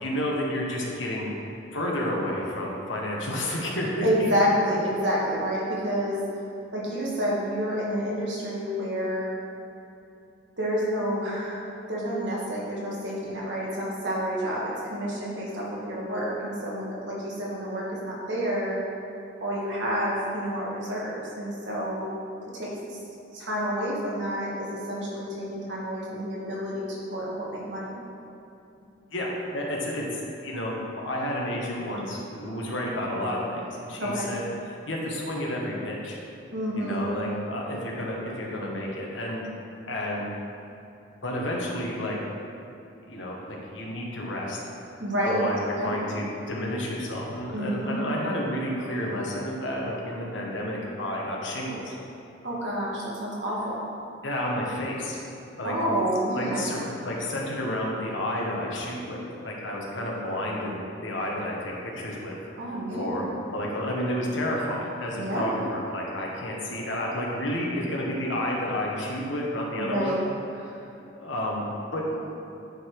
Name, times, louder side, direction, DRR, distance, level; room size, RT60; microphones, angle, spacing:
voice 1, 0.0-1.3 1.7-4.5 28.8-28.9 29.1-30.0 30.4-34.4 34.9-36.2 36.8-39.4 39.9-40.3 41.2-42.2 43.0-44.6 45.2-52.0 54.2-55.2 55.6-55.7 56.3-62.4 62.9-63.2 63.5-70.2 70.6-70.9 71.1-71.6 71.9-72.0, left 1 dB, 85° left, -2 dB, 1.4 m, -31 dB
voice 2, 4.0-6.2 6.7-9.3 10.6-18.8 19.4-22.1 22.5-23.0 23.3-28.0 34.0-34.3 36.5-37.2 45.0-45.4 45.8-46.0 47.5-48.0 52.4-53.9 55.6-56.7 62.6-63.4 65.2-65.6 69.7-70.2, equal, 75° right, -5 dB, 1.9 m, -29 dB
9.8 x 4.0 x 4.7 m, 2.7 s
head